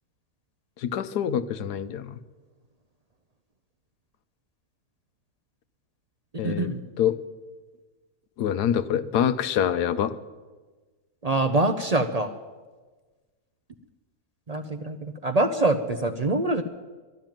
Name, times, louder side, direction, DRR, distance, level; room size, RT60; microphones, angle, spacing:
voice 1, 0.8-2.2 6.4-6.7 7.0-7.2 8.4-10.2, left 9 dB, 85° left, 12 dB, 1.3 m, -25 dB
voice 2, 6.3-6.8 11.2-12.3 14.5-16.6, right 2 dB, 55° right, 8 dB, 0.4 m, -25 dB
12.0 x 12.0 x 9.1 m, 1.3 s
omnidirectional pair, 1.7 m